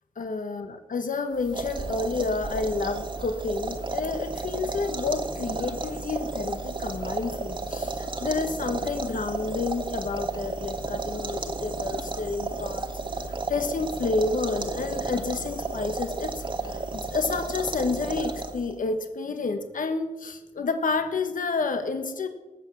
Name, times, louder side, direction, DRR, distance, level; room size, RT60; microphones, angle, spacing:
voice 1, 0.2-0.6 0.9-12.9 13.5-22.3, left 3 dB, 80° left, 7 dB, 1.2 m, -30 dB
sound 1, 1.4-18.8, right 3 dB, 35° right, 1.4 m, -33 dB
19.0 x 7.0 x 7.4 m, 1.1 s
wide cardioid pair, 105°, 14 cm